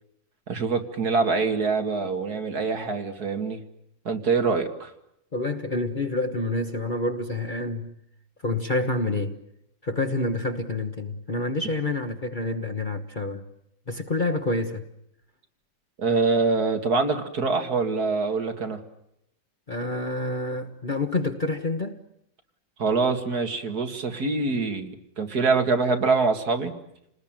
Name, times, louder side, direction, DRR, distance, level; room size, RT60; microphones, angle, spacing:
voice 1, 0.5-3.6 4.1-4.9 16.0-18.8 22.8-26.7, right 4 dB, 55° right, 2.4 m, -24 dB
voice 2, 5.3-7.9 8.4-9.4 9.8-13.4 13.9-14.8 19.7-22.0, left 2 dB, 30° left, 1.3 m, -28 dB
29.0 x 20.0 x 9.0 m
omnidirectional pair, 2.0 m